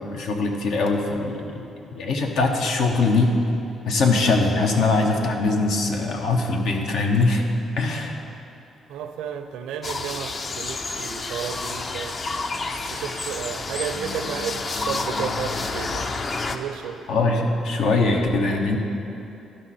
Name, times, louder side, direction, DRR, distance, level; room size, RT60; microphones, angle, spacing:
voice 1, 0.0-1.7 1.9-3.3 3.8-7.4 7.8-8.2 17.1-18.8, left 3 dB, 80° left, 2 dB, 0.9 m, -22 dB
voice 2, 8.9-12.2 12.9-16.2 16.5-17.0, right 8 dB, 90° right, 7 dB, 0.5 m, -32 dB
sound 1, 9.8-16.6, left 3 dB, 40° left, 0.5 m, -29 dB
12.5 x 5.2 x 4.2 m, 2.8 s
cardioid pair, 90°, 0 cm